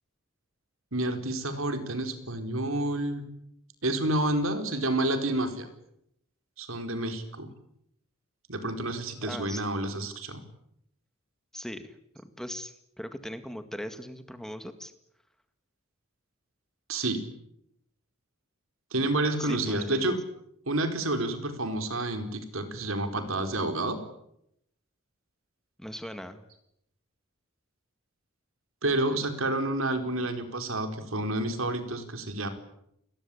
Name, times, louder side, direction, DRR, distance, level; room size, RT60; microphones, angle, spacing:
voice 1, 0.9-3.3 3.8-5.7 6.6-7.5 8.5-10.4 16.9-17.2 18.9-20.2 20.7-24.0 28.8-32.5, right 1 dB, 75° right, 7 dB, 4.5 m, -29 dB
voice 2, 9.2-9.6 11.5-14.9 19.4-20.0 25.8-26.4, equal, ahead, 9 dB, 2.0 m, -39 dB
30.0 x 22.0 x 8.7 m, 0.79 s
head